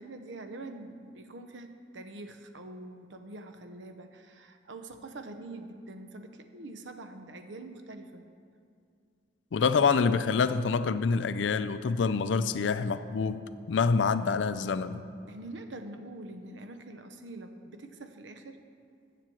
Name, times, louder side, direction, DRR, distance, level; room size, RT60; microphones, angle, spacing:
voice 1, 0.0-8.2 15.3-18.6, right 2 dB, 80° right, 7 dB, 0.8 m, -44 dB
voice 2, 9.5-15.0, left 5 dB, 80° left, 13 dB, 0.4 m, -26 dB
7.4 x 6.8 x 7.7 m, 2.3 s
head